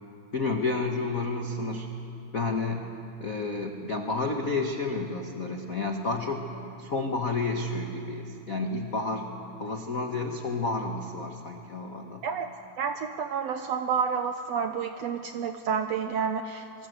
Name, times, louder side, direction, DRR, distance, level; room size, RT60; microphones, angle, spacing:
voice 1, 0.3-1.9 2.3-2.9 3.2-6.4 6.8-9.3 9.6-12.2, left 3 dB, 85° left, 3 dB, 0.7 m, -30 dB
voice 2, 12.8-16.9, right 6 dB, 75° right, 7 dB, 1.5 m, -30 dB
26.0 x 22.5 x 8.1 m, 2.7 s
omnidirectional pair, 3.9 m